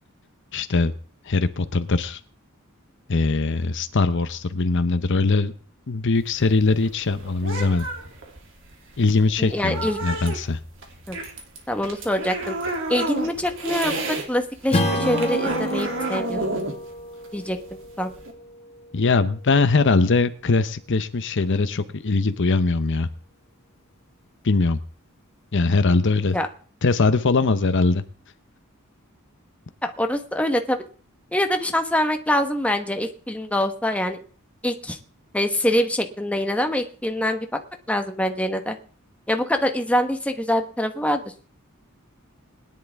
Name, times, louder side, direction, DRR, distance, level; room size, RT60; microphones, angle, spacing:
voice 1, 0.5-0.9 1.2-2.2 3.1-5.5 5.9-7.9 9.0-10.6 18.9-23.1 24.4-24.8 25.5-26.4 26.8-28.0, left 3 dB, 60° left, 11 dB, 0.7 m, -21 dB
sound 1, 6.2-14.3 14.6-18.3, right 2 dB, 65° right, 2.8 m, -30 dB
voice 2, 9.4-10.0 11.1-11.2 11.7-12.6 12.9-16.4 17.3-17.6 18.0-18.1 26.3-26.5 29.8-30.8 31.3-34.2 34.6-35.0 35.3-37.5 37.9-38.8 39.3-41.2, left 1 dB, 5° left, 5 dB, 1.2 m, -24 dB
Strum, 14.7-19.6, left 1 dB, 30° left, 1.7 m, -30 dB
21.0 x 10.5 x 3.5 m, 0.42 s
head